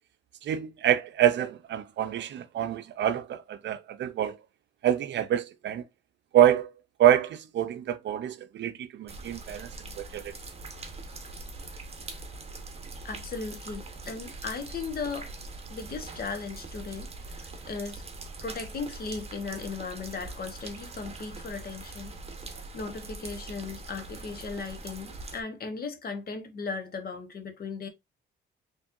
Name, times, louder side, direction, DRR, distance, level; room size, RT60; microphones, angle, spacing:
voice 1, 0.4-4.4 4.8-5.8 6.3-6.7 7.0-9.7 10.0-10.3, right 11 dB, 65° right, 0.6 m, -26 dB
sound 1, 9.1-25.4, right 3 dB, 30° right, 1.0 m, -42 dB
voice 2, 13.0-15.3 15.7-17.1 17.3-18.0 18.4-22.2 22.5-27.9, left 4 dB, 50° left, 1.2 m, -37 dB
4.3 x 3.2 x 2.5 m
cardioid pair, 90°, 20 cm